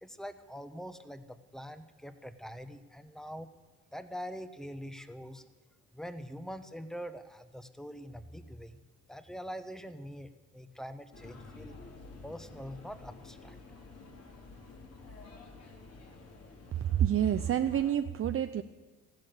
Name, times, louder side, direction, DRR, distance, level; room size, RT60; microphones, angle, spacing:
voice 1, 0.0-3.5 3.9-5.4 5.9-8.8 9.1-11.8 12.2-13.6, equal, ahead, 11 dB, 1.2 m, -44 dB
sound 1, 11.1-17.9, left 3 dB, 55° left, 4.2 m, -50 dB
voice 2, 16.9-18.6, right 10 dB, 45° right, 8 dB, 0.7 m, -28 dB
15.5 x 11.5 x 8.0 m, 1.3 s
cardioid pair, 90°, 30 cm